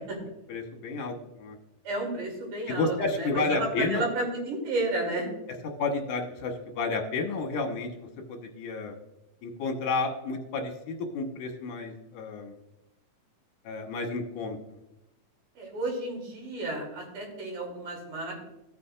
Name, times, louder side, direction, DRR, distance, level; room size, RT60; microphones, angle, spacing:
voice 1, 0.5-1.6 2.7-4.1 5.8-9.0 9.4-12.6 13.6-14.8, left 3 dB, 80° left, 3 dB, 2.7 m, -31 dB
voice 2, 1.9-3.4 3.8-5.3 15.6-18.4, right 2 dB, 80° right, -1 dB, 4.3 m, -32 dB
15.5 x 8.4 x 2.4 m, 0.91 s
omnidirectional pair, 3.6 m